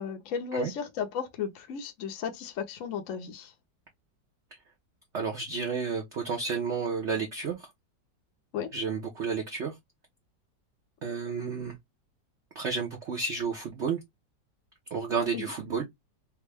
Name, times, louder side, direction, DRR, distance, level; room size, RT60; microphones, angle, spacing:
voice 1, 0.0-3.5 8.5-8.7 15.3-15.4, left 7 dB, 65° left, 0.8 m, -34 dB
voice 2, 5.1-7.7 8.7-9.7 11.0-11.8 12.5-14.0 14.9-15.8, right 5 dB, 55° right, 0.8 m, -31 dB
3.5 x 2.1 x 3.2 m
omnidirectional pair, 2.0 m